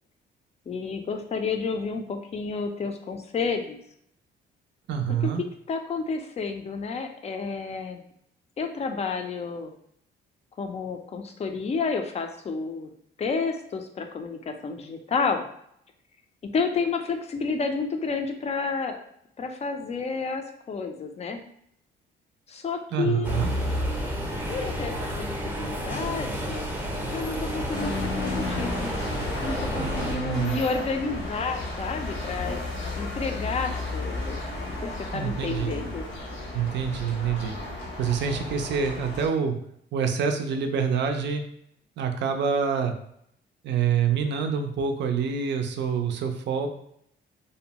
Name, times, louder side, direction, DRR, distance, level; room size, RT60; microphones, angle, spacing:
voice 1, 0.7-3.8 5.2-5.3 5.7-8.0 8.6-9.7 10.6-12.9 13.2-15.4 16.5-19.0 19.4-21.4 22.5-23.3 24.5-26.6 27.1-28.9 29.4-32.6 33.0-34.4 34.7-36.1, left 4 dB, 35° left, 5 dB, 0.4 m, -30 dB
voice 2, 4.9-5.4 22.9-23.5 29.8-30.6 35.1-35.8 36.5-37.5 38.0-39.6 39.9-41.4 42.0-42.9 43.6-46.7, right 6 dB, 65° right, 5 dB, 0.4 m, -26 dB
sound 1, 23.2-30.2, equal, 10° right, 0.6 m, -30 dB
sound 2, 27.7-39.3, left 2 dB, 75° left, 0.8 m, -34 dB
2.6 x 2.0 x 2.8 m, 0.71 s
cardioid pair, 90°, 20 cm